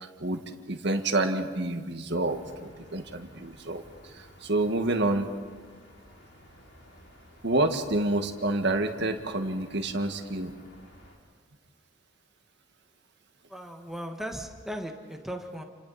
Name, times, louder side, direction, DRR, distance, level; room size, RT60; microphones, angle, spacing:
voice 1, 0.0-5.3 7.4-10.5, right 2 dB, 60° right, 5 dB, 1.8 m, -28 dB
sound 1, 2.2-11.2, left 1 dB, 90° left, 5.6 m, -54 dB
voice 2, 13.5-15.6, equal, ahead, 2 dB, 1.7 m, -37 dB
29.5 x 27.0 x 4.3 m, 1.5 s
head